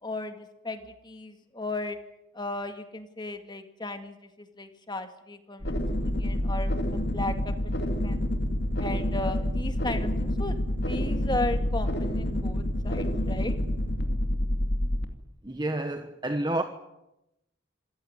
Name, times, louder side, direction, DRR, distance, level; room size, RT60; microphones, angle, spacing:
voice 1, 0.0-2.0 2.3-7.5 8.0-8.2 8.8-13.6, left 2 dB, 20° left, 2.0 m, -35 dB
sound 1, 5.6-15.0, left 1 dB, 55° left, 2.5 m, -28 dB
voice 2, 15.4-16.6, right 1 dB, 20° right, 1.2 m, -29 dB
27.0 x 15.5 x 9.7 m
head